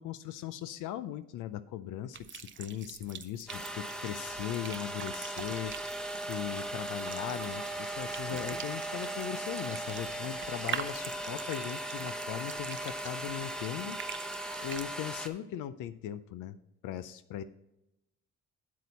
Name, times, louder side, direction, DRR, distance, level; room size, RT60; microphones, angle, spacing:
voice 1, 0.0-5.7 6.3-14.0 14.6-16.6 16.8-17.4, left 11 dB, 85° left, 13 dB, 0.5 m, -39 dB
sound 1, 2.1-14.9, right 8 dB, 40° right, 0.6 m, -45 dB
sound 2, 3.5-15.3, right 1 dB, ahead, 0.9 m, -38 dB
8.4 x 8.4 x 4.1 m, 0.87 s
cardioid pair, 90°, 30 cm